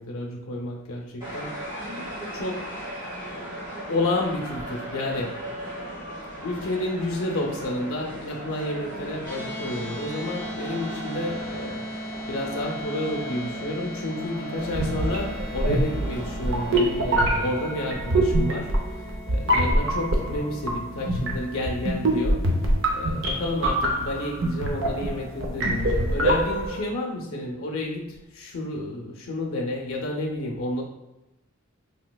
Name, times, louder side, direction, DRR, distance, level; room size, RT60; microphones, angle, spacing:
voice 1, 0.0-1.6 2.3-2.7 3.3-3.6 3.9-5.5 6.4-11.8 12.3-18.7 19.3-22.5 22.9-30.8, left 1 dB, 70° left, 0 dB, 0.5 m, -30 dB
sound 1, 1.2-16.8, right 1 dB, 20° right, 1.4 m, -37 dB
sound 2, 9.2-23.6, equal, 10° left, 1.0 m, -39 dB
sound 3, 14.7-26.8, right 1 dB, 60° right, 0.5 m, -25 dB
3.3 x 2.9 x 2.2 m, 0.94 s
head